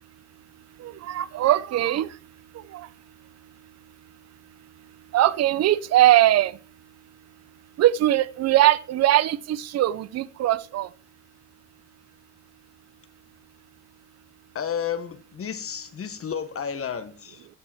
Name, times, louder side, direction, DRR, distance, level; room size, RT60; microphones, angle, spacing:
voice 1, 0.8-2.1 2.7-2.9 5.1-6.5 7.8-10.9, right 13 dB, 60° right, 0.6 m, -21 dB
voice 2, 14.5-17.5, left 7 dB, 45° left, 1.1 m, -32 dB
15.0 x 5.5 x 4.3 m
cardioid pair, 90°, 30 cm